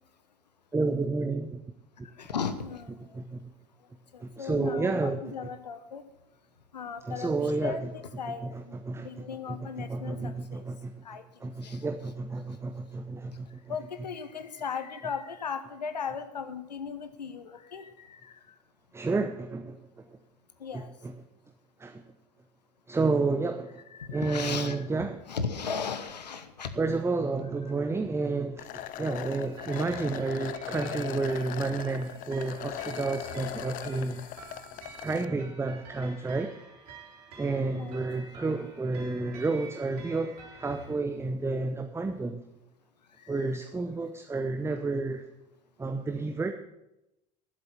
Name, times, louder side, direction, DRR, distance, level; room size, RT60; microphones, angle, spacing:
voice 1, 0.7-1.6 3.1-3.5 4.2-5.2 7.1-7.9 8.4-10.9 11.4-13.7 18.9-19.8 20.7-21.1 21.8-22.0 22.9-23.8 24.1-25.2 26.8-34.2 35.0-36.5 37.3-42.4 43.3-45.2 45.8-46.5, right 3 dB, 10° right, 6 dB, 0.9 m, -31 dB
voice 2, 2.2-2.9 4.1-6.0 6.7-7.3 7.6-8.7 9.0-10.6 11.0-11.2 11.6-11.8 13.7-18.3 20.6-20.9 23.9-24.9 25.3-26.7 37.7-38.3 43.3-43.4, left 6 dB, 80° left, 10 dB, 1.1 m, -37 dB
sound 1, 28.6-35.3, left 14 dB, 40° left, 0.5 m, -40 dB
sound 2, 29.3-40.9, right 4 dB, 65° right, 3.6 m, -50 dB
11.0 x 8.0 x 8.5 m, 0.90 s
figure-of-eight pair, 70°, 21 cm